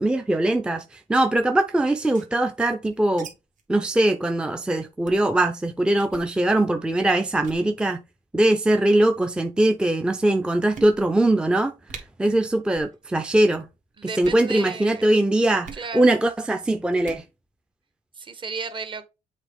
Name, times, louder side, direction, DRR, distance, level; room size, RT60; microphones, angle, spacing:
voice 1, 0.0-3.3 3.7-8.0 8.3-11.7 12.2-13.7 14.0-17.2, right 1 dB, 5° right, 0.5 m, -21 dB
sound 1, 1.9-3.3 3.6-3.7 3.9-4.1 4.5-4.6 5.0-5.3 6.0-6.3 6.9-7.1 7.4-7.6 8.5-8.9 9.7-9.8 10.2-10.3 10.7-11.3 11.6-11.7 11.9-12.0 12.7-13.0 13.2-13.6 14.1-14.5 15.6-15.9 16.9-17.3, right 5 dB, 65° right, 1.7 m, -42 dB
voice 2, 14.0-15.2 15.7-16.2 18.2-19.1, right 4 dB, 35° right, 1.0 m, -34 dB
7.4 x 3.7 x 3.5 m
cardioid pair, 110°, 14 cm